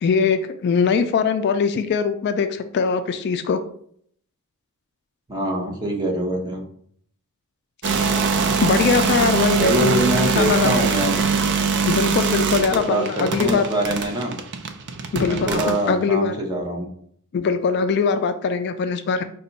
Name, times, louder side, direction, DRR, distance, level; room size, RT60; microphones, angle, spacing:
voice 1, 0.0-3.6 8.6-10.0 10.4-10.8 11.9-13.7 15.1-16.3 17.3-19.2, left 5 dB, 50° left, 9 dB, 0.3 m, -21 dB
voice 2, 5.3-6.6 9.6-11.2 12.8-14.4 15.2-16.9, equal, 20° right, 0 dB, 0.8 m, -24 dB
sound 1, 7.8-15.9, right 5 dB, 55° right, 0.5 m, -22 dB
5.1 x 2.3 x 3.9 m, 0.64 s
head